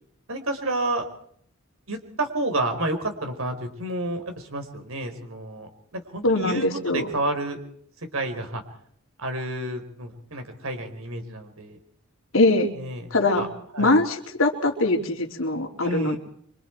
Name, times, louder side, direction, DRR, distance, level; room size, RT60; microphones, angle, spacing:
voice 1, 0.3-1.1 1.9-7.6 8.1-8.6 9.2-11.8 12.8-13.1 13.4-13.5 13.7-13.9 15.8-16.2, right 1 dB, 75° right, 5 dB, 4.3 m, -30 dB
voice 2, 6.2-7.1 12.3-12.7 13.1-13.5 13.8-16.2, left 2 dB, 70° left, 2 dB, 3.4 m, -22 dB
26.0 x 25.5 x 4.6 m, 0.64 s
head